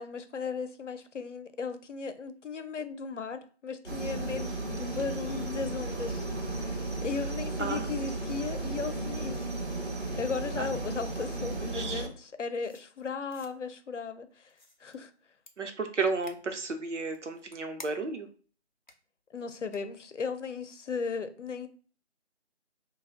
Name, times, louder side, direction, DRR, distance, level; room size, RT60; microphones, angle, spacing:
voice 1, 0.0-6.3 7.0-9.5 10.2-14.5 14.8-15.1 19.3-21.7, left 5 dB, 85° left, 0.6 m, -36 dB
sound 1, 3.9-12.1, right 2 dB, 65° right, 1.0 m, -34 dB
voice 2, 7.6-7.9 10.6-10.7 11.6-12.1 15.6-18.3, right 4 dB, 80° right, 0.7 m, -33 dB
sound 2, 12.6-13.5 14.5-15.0 15.5-15.6 16.2-16.4 17.1-18.2 18.9-19.0 19.7-19.8, left 1 dB, 40° left, 0.4 m, -51 dB
2.4 x 2.2 x 3.5 m
figure-of-eight pair, 165°, 35 cm